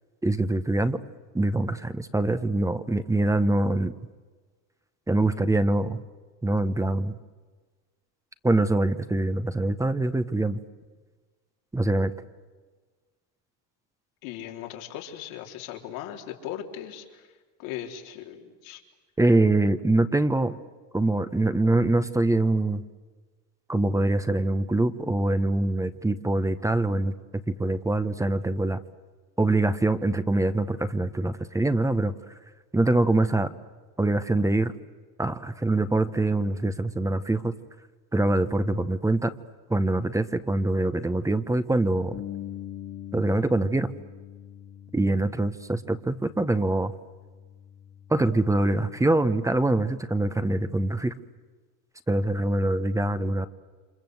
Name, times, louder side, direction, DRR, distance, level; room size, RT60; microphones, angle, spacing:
voice 1, 0.2-1.0 1.3-3.9 5.1-6.0 6.4-7.1 8.4-10.6 11.7-12.1 19.2-20.6 20.9-22.8 23.7-27.1 27.5-28.8 29.4-32.1 32.7-33.5 34.0-34.7 35.2-37.5 38.1-39.3 39.7-42.1 43.1-43.9 44.9-46.9 48.1-51.1 52.1-53.5, right 2 dB, 10° right, 12 dB, 1.0 m, -24 dB
voice 2, 14.2-17.3 17.6-18.8, left 11 dB, 90° left, 2 dB, 4.0 m, -38 dB
Bass guitar, 42.1-48.4, left 11 dB, 40° left, 2.0 m, -43 dB
29.0 x 26.0 x 8.0 m, 1.4 s
cardioid pair, 135°, 40 cm